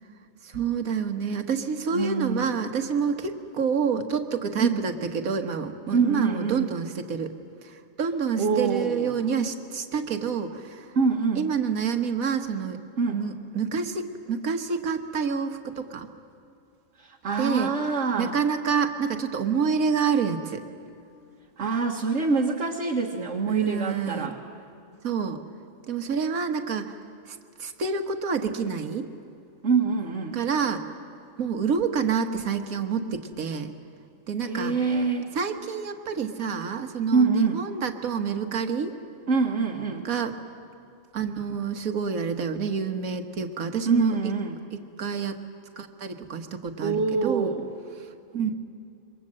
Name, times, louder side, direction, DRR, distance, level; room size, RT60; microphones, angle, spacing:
voice 1, 0.4-7.3 7.6-10.9 11.4-12.8 13.1-16.1 17.4-17.7 18.2-20.6 23.5-24.3 25.0-25.4 25.9-27.0 27.3-29.1 30.3-30.8 31.4-33.7 34.3-34.7 35.4-39.0 40.1-40.3 41.1-44.2 44.7-45.4 45.8-46.9 47.2-47.5 48.3-48.5, right 6 dB, 85° right, 6 dB, 1.7 m, -28 dB
voice 2, 1.9-2.5 4.6-4.8 5.9-6.7 8.4-9.2 10.9-11.5 13.0-13.2 17.0-18.4 21.6-24.4 29.6-30.4 34.4-35.3 37.1-37.6 39.3-40.0 43.9-44.6 46.8-47.7, right 4 dB, 60° right, 0 dB, 1.7 m, -25 dB
27.0 x 23.5 x 7.6 m, 2.5 s
omnidirectional pair, 1.4 m